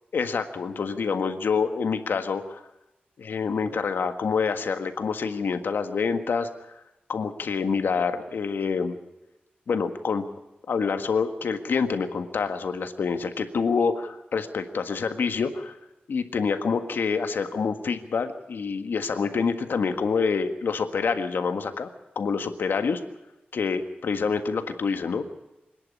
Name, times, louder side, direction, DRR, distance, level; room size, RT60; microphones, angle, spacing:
voice 1, 0.1-2.6 3.2-6.7 7.1-9.0 9.7-10.2 10.7-15.7 16.1-21.9 22.1-23.0 23.5-25.2, left 5 dB, 75° left, 8 dB, 1.6 m, -27 dB
25.0 x 11.0 x 9.9 m, 0.96 s
wide cardioid pair, 170°, 4 cm